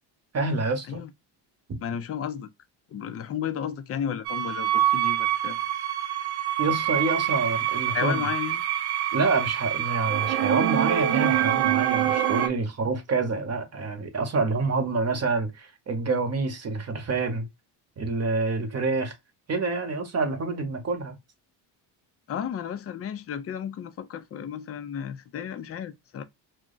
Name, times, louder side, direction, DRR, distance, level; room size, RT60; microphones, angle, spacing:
voice 1, 0.3-1.0 1.7-1.8 6.6-8.2 9.1-17.5 18.0-19.1 19.5-21.1, right 3 dB, 35° right, 0.9 m, -27 dB
voice 2, 1.8-2.5 2.9-5.6 7.9-8.6 22.3-26.2, left 8 dB, 35° left, 0.4 m, -33 dB
sound 1, 4.2-12.5, right 12 dB, 60° right, 0.5 m, -25 dB
2.3 x 2.1 x 3.7 m
cardioid pair, 100°, 46 cm